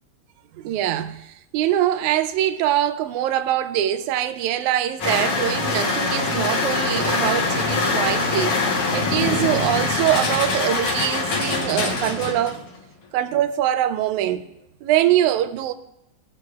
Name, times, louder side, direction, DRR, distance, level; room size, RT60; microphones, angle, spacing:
voice 1, 0.6-12.6 13.1-14.4 14.8-15.7, right 12 dB, 85° right, 2.0 m, -23 dB
sound 1, 5.0-12.6, left 3 dB, 60° left, 1.9 m, -23 dB
16.5 x 6.5 x 2.3 m
omnidirectional pair, 3.3 m